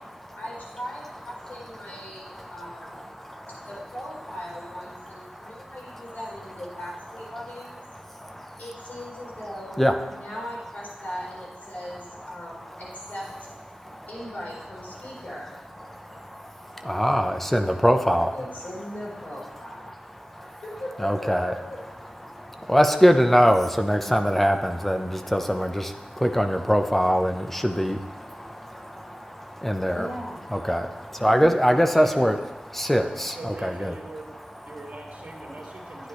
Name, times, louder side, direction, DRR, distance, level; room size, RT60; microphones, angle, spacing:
voice 1, 0.4-3.0 3.7-7.8 8.6-13.5 14.1-15.5 18.3-20.0 20.6-21.8 29.9-30.5, equal, 70° left, -6 dB, 4.2 m, -39 dB
voice 2, 2.8-3.7 5.3-5.8 6.1-6.2 8.0-8.6 9.8-9.9 13.7-14.1 15.9-18.3 19.9-20.6 21.0-21.5 22.2-30.1 30.5-32.4 32.6-34.0 35.4-36.1, equal, 10° left, 5 dB, 0.7 m, -24 dB
voice 3, 33.4-34.3 34.6-36.1, right 2 dB, 65° right, -2 dB, 2.2 m, -41 dB
11.5 x 9.9 x 3.2 m, 1.0 s
wide cardioid pair, 85°, 3 cm